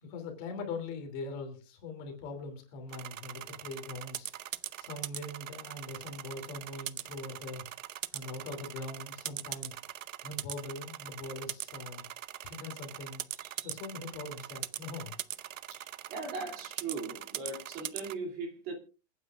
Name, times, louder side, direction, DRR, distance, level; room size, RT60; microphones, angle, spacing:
voice 1, 0.0-7.6 8.1-9.8 10.2-12.0 12.4-13.2 13.6-15.2, left 3 dB, 30° left, 2.9 m, -42 dB
sound 1, 2.9-18.1, right 12 dB, 80° right, 0.9 m, -41 dB
voice 2, 13.3-13.7 15.7-18.7, right 3 dB, 25° right, 2.8 m, -39 dB
28.0 x 9.4 x 2.5 m
hypercardioid pair, 170°, 38 cm